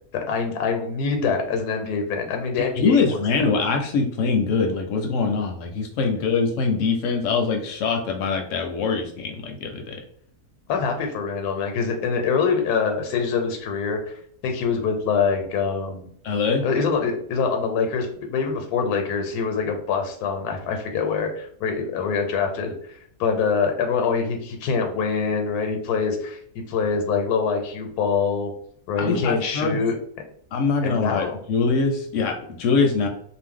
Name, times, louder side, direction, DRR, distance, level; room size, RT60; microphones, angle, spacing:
voice 1, 0.1-3.0 10.7-16.1 16.6-22.7 23.2-28.5 28.9-29.9 30.8-31.3, left 5 dB, 90° left, 4 dB, 1.1 m, -24 dB
voice 2, 2.8-10.0 16.2-16.6 29.0-29.8 30.5-33.1, left 4 dB, 70° left, 3 dB, 0.8 m, -23 dB
2.6 x 2.0 x 3.6 m, 0.64 s
omnidirectional pair, 1.6 m